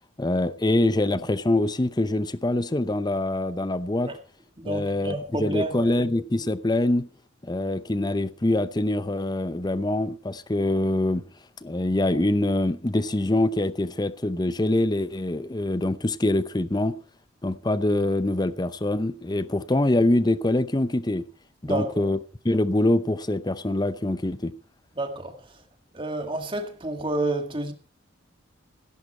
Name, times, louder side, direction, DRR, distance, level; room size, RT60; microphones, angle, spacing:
voice 1, 0.2-4.1 4.6-7.1 7.4-11.2 11.6-17.0 17.4-21.3 21.6-22.2 22.4-24.5, left 1 dB, 20° left, 0.6 m, -24 dB
voice 2, 4.6-5.9 21.6-22.1 25.0-25.4 25.9-27.7, right 2 dB, 25° right, 2.0 m, -29 dB
16.5 x 11.0 x 4.4 m
head